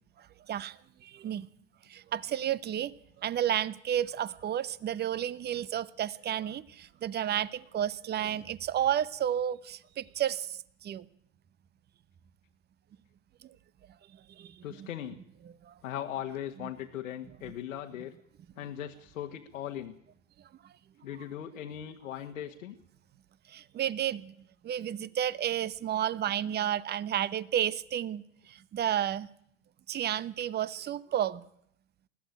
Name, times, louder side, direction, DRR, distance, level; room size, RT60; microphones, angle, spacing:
voice 1, 1.0-1.5 1.9-2.9 3.2-10.6 10.8-11.0 14.4-14.5 14.8-14.9 23.5-24.3 24.6-28.2 28.7-29.3 29.9-31.4, right 10 dB, 25° right, 0.9 m, -31 dB
voice 2, 14.6-15.2 15.8-18.1 18.6-19.9 21.0-22.7, left 10 dB, 75° left, 1.6 m, -39 dB
20.5 x 14.5 x 9.3 m
hypercardioid pair, 100°, 40 cm